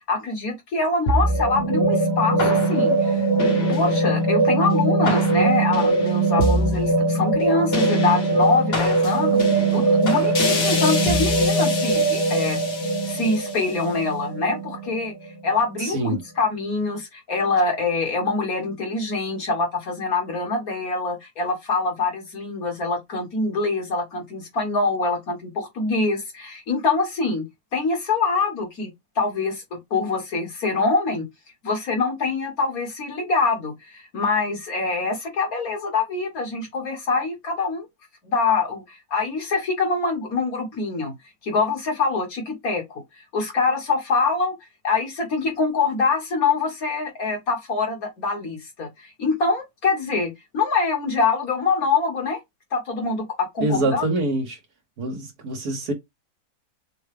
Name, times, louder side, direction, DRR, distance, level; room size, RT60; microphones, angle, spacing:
voice 1, 0.1-3.3 3.7-27.5 27.7-28.9 29.2-31.3 31.6-37.9 38.2-41.1 41.4-43.0 43.3-44.5 44.8-52.4 52.7-54.1, left 4 dB, 70° left, 2.1 m, -24 dB
sound 1, 1.1-15.5, right 2 dB, 45° left, 1.3 m, -21 dB
voice 2, 15.8-16.2 53.6-54.6 55.0-55.9, right 2 dB, 75° right, 1.9 m, -25 dB
6.2 x 2.3 x 3.3 m
omnidirectional pair, 1.6 m